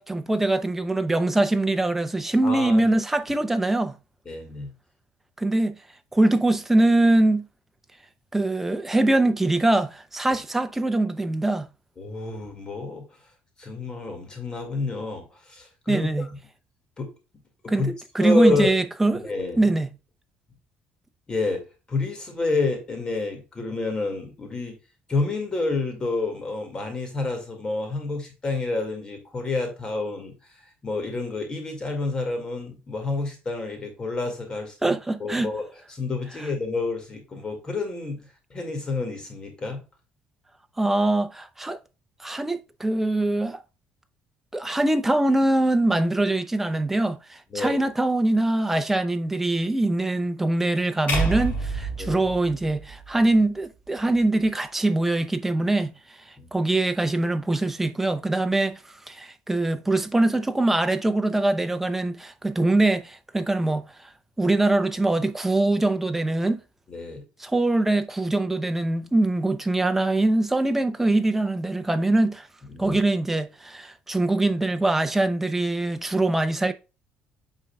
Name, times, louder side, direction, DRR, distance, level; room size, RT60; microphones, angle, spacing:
voice 1, 0.0-4.0 5.4-5.7 6.1-7.5 8.3-11.7 15.9-16.3 17.7-19.2 19.6-19.9 34.8-35.5 40.8-41.8 42.2-43.6 44.5-55.9 56.3-58.8 59.1-63.9 64.4-66.6 67.4-72.5 72.8-76.7, right 2 dB, 10° right, 0.7 m, -23 dB
voice 2, 2.4-2.8 4.3-4.7 12.0-13.1 13.6-16.3 17.0-17.1 17.6-17.9 18.2-18.7 19.2-19.6 21.3-21.6 21.9-24.7 25.1-30.3 30.8-34.9 35.2-35.6 35.9-38.2 38.5-39.8 47.5-47.8 52.0-52.2 56.4-56.5 66.9-67.2 72.7-73.0, left 3 dB, 25° left, 2.1 m, -29 dB
sound 1, 51.1-53.3, right 2 dB, 50° left, 3.8 m, -28 dB
9.0 x 5.4 x 2.3 m
cardioid pair, 150°, 3 cm